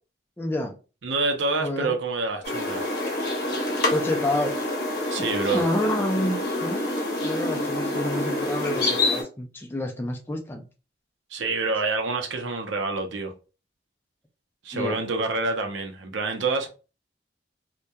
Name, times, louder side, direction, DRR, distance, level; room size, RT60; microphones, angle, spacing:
voice 1, 0.4-0.7 1.6-1.9 3.9-4.6 5.5-6.9 7.2-10.6 14.7-15.0, left 1 dB, 10° left, 0.3 m, -28 dB
voice 2, 1.0-2.9 5.1-5.6 11.3-13.3 14.6-16.7, right 3 dB, 85° right, 0.6 m, -27 dB
sound 1, 2.4-9.2, left 2 dB, 55° left, 0.7 m, -27 dB
2.8 x 2.2 x 2.2 m
head